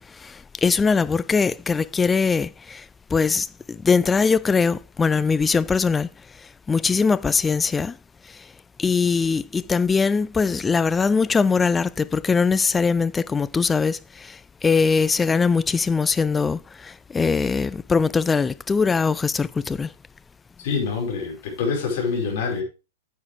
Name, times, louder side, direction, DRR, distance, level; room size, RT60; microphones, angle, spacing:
voice 1, 0.6-2.8 3.1-6.1 6.7-7.9 8.8-14.4 14.6-19.9, left 5 dB, 15° left, 0.4 m, -21 dB
voice 2, 20.6-22.6, left 5 dB, 55° left, 5.6 m, -25 dB
9.7 x 8.3 x 3.5 m
hypercardioid pair, 110°, 0 cm